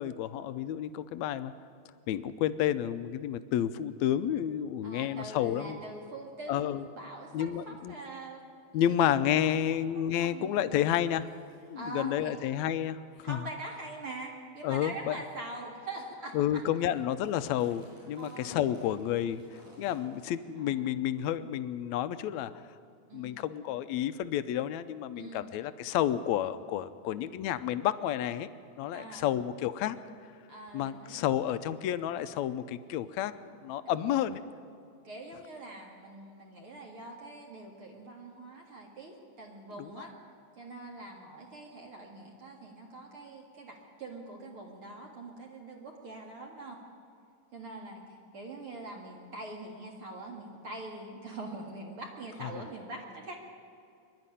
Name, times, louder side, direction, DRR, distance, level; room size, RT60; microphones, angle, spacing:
voice 1, 0.0-1.5 2.1-5.8 6.5-6.9 7.3-7.9 8.7-11.3 11.7-13.4 14.6-15.2 16.3-22.5 23.1-28.5 28.8-30.0 30.7-33.3 33.6-34.4 39.7-40.1 52.4-52.6, left 11 dB, 75° left, 12 dB, 1.8 m, -30 dB
voice 2, 4.8-8.4 8.7-9.0 9.4-9.6 10.2-10.8 11.7-12.3 13.2-16.6 18.2-18.6 20.6-21.0 23.1-23.3 25.2-25.4 28.9-29.3 30.5-31.2 34.0-34.3 35.0-40.2 40.6-46.8 47.5-48.0 48.3-53.4, right 2 dB, 50° right, -1 dB, 2.5 m, -43 dB
sound 1, 8.6-8.7 9.1-9.3 10.4-10.5 11.1-11.7 12.5-12.6 13.2-13.4 14.0-14.1 14.8-15.0 15.5-15.7 16.1-16.2 16.3-16.6 16.9-20.6 20.8-21.0 21.8-21.9, equal, 65° right, 8.6 m, -58 dB
23.5 x 11.0 x 9.9 m, 2.5 s
omnidirectional pair, 3.5 m